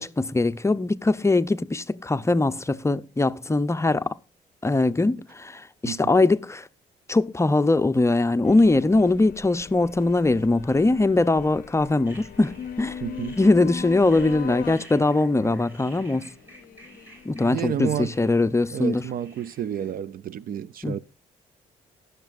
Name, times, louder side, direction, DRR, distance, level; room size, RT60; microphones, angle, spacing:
voice 1, 0.0-4.2 4.6-6.7 7.1-13.0 13.4-16.3 17.3-19.0 20.8-21.0, left 2 dB, 15° left, 0.6 m, -21 dB
voice 2, 5.8-6.1 13.0-13.4 17.4-18.3 18.7-21.0, right 10 dB, 60° right, 0.5 m, -30 dB
sound 1, 8.4-18.7, left 9 dB, 60° left, 0.6 m, -41 dB
sound 2, 12.0-20.0, equal, 10° right, 5.5 m, -51 dB
19.5 x 6.6 x 2.5 m
cardioid pair, 75°, 17 cm